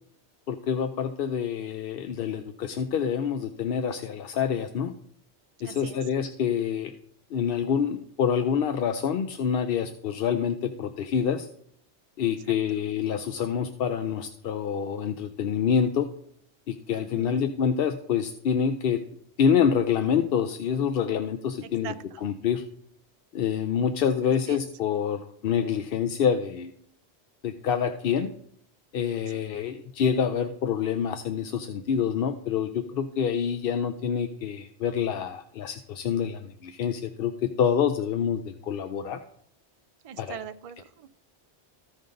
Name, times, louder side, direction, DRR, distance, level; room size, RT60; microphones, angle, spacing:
voice 1, 0.5-4.9 5.6-6.9 7.3-11.5 12.2-16.1 16.7-19.0 19.4-22.6 23.3-26.7 27.4-28.3 28.9-39.2 40.2-40.4, left 7 dB, 65° left, 8 dB, 0.7 m, -27 dB
voice 2, 5.6-6.0 12.7-12.8 16.9-17.4 21.8-21.9 24.5-24.6 40.0-41.1, right 8 dB, 50° right, 9 dB, 0.4 m, -40 dB
14.5 x 5.4 x 3.8 m, 0.67 s
omnidirectional pair, 1.2 m